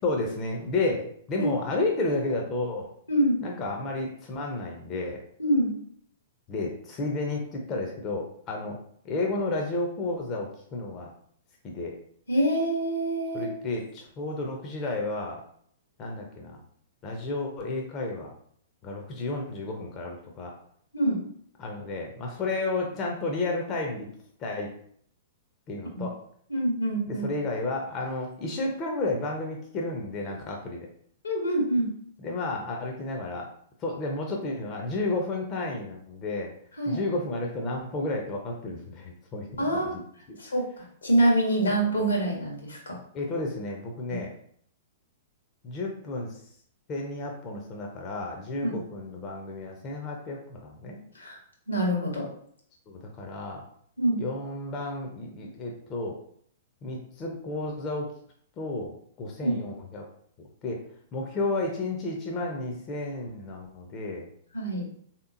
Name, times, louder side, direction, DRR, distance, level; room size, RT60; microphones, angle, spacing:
voice 1, 0.0-2.9 3.4-5.2 6.5-8.8 9.0-11.1 11.6-12.0 13.3-15.4 16.0-16.6 17.0-18.3 18.8-20.5 21.6-24.1 24.4-24.7 25.7-26.2 27.1-30.9 32.2-33.5 33.8-36.5 36.9-40.0 40.3-40.4 41.6-41.7 43.1-44.3 45.6-46.4 46.9-51.0 52.9-53.6 54.2-56.2 56.8-58.1 58.6-60.1 60.4-60.8 61.1-64.3, left 2 dB, 30° left, 0 dB, 0.6 m, -32 dB
voice 2, 3.1-3.4 5.4-5.7 12.3-13.5 20.9-21.2 26.0-26.1 26.5-27.3 31.2-31.9 36.8-37.0 39.6-39.9 40.4-40.7 41.0-43.0 44.1-44.2 48.6-48.8 51.1-51.4 51.7-52.3 54.0-54.2 59.4-59.5 64.5-64.9, right 1 dB, 80° left, -1 dB, 1.1 m, -25 dB
3.4 x 2.9 x 2.5 m, 0.62 s
figure-of-eight pair, 110°, 0 cm